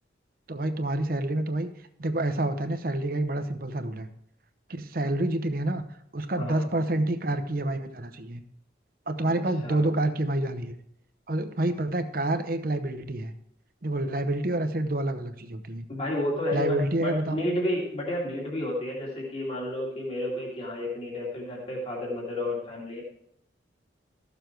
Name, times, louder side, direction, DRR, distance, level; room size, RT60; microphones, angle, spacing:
voice 1, 0.5-1.7 2.0-4.1 4.7-5.8 6.1-8.4 9.1-10.8 11.3-13.3 13.8-15.9 16.5-17.5, right 1 dB, 50° right, 9 dB, 0.8 m, -28 dB
voice 2, 15.9-23.0, left 1 dB, 35° left, -3 dB, 2.4 m, -31 dB
14.0 x 7.0 x 4.6 m, 0.74 s
head